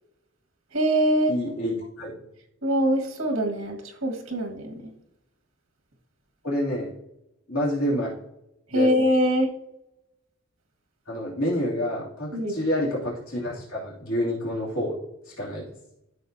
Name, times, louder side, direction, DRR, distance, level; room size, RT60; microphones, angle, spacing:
voice 1, 0.7-1.3 2.6-4.9 8.7-9.5 12.3-12.6, equal, 65° right, 1 dB, 1.6 m, -23 dB
voice 2, 1.3-2.1 6.4-6.9 7.5-8.1 8.7-8.9 11.1-15.0 15.3-15.6, equal, 85° left, -5 dB, 2.6 m, -28 dB
13.0 x 6.2 x 2.7 m, 0.86 s
head